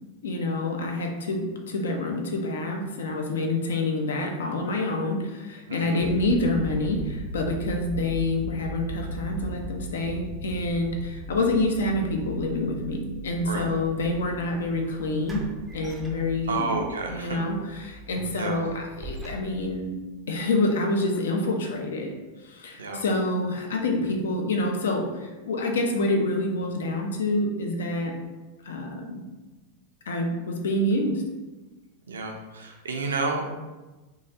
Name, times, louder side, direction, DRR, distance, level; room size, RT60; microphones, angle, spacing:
voice 1, 0.2-15.5 15.7-16.8 17.1-19.9 20.3-22.1 22.4-28.1 28.6-29.2 30.1-31.2, left 2 dB, 65° left, 2 dB, 0.4 m, -27 dB
voice 2, 5.7-6.0 13.4-13.7 16.5-17.4 18.4-18.6 22.8-23.0 32.1-33.6, right 3 dB, 70° right, 2 dB, 0.4 m, -30 dB
sound 1, 6.0-20.1, right 1 dB, 30° left, 0.9 m, -38 dB
sound 2, 14.3-14.4 15.3-16.7 17.1-17.3 17.8-19.9, right 1 dB, 10° right, 0.5 m, -42 dB
3.0 x 2.3 x 2.7 m, 1.2 s
figure-of-eight pair, 90°, 0 cm